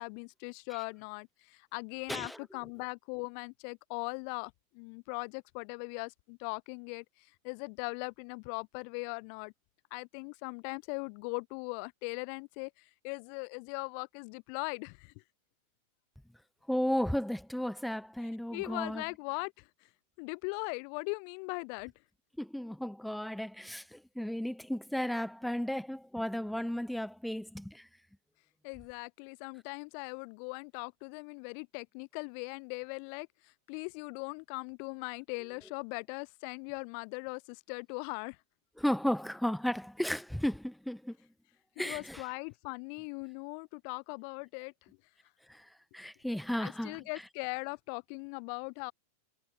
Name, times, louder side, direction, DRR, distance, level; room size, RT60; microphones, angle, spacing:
voice 1, 0.0-9.5 9.9-15.1 18.2-19.9 20.2-21.9 28.6-38.4 41.8-44.9 46.6-48.9, left 40 dB or more, 45° left, 0.4 m, -40 dB
voice 2, 16.7-19.0 22.4-27.7 38.8-41.1 41.8-42.2 45.9-47.0, equal, ahead, 0.6 m, -34 dB
figure-of-eight pair, 90°, 0 cm